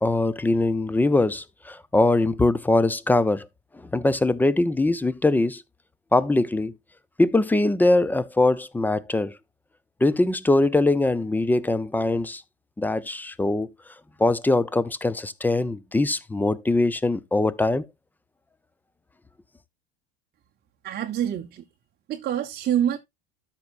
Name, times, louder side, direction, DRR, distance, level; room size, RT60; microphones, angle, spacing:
voice 1, 0.0-3.5 3.9-5.6 6.1-6.7 7.2-9.4 10.0-12.4 12.8-13.7 14.2-17.9, left 2 dB, 5° left, 0.6 m, -22 dB
voice 2, 20.8-21.6 22.1-23.0, right 10 dB, 30° right, 0.8 m, -26 dB
13.0 x 5.6 x 2.5 m
hypercardioid pair, 90°, 33 cm